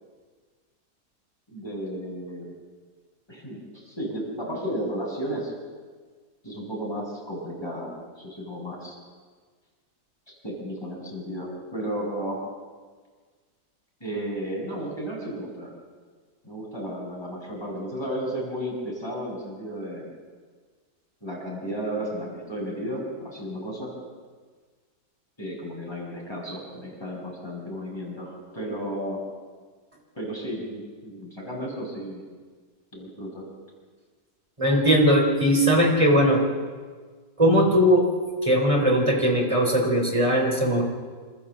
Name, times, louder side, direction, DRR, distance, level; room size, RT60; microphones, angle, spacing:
voice 1, 1.5-2.5 3.3-5.5 6.4-9.0 10.3-12.4 14.0-15.7 16.4-20.1 21.2-23.9 25.4-29.2 30.1-32.2 32.9-33.5, equal, 15° left, -3 dB, 6.5 m, -33 dB
voice 2, 34.6-36.4 37.4-38.0 38.4-40.8, equal, 20° right, 0 dB, 4.0 m, -19 dB
27.0 x 14.0 x 7.5 m, 1.5 s
omnidirectional pair, 1.8 m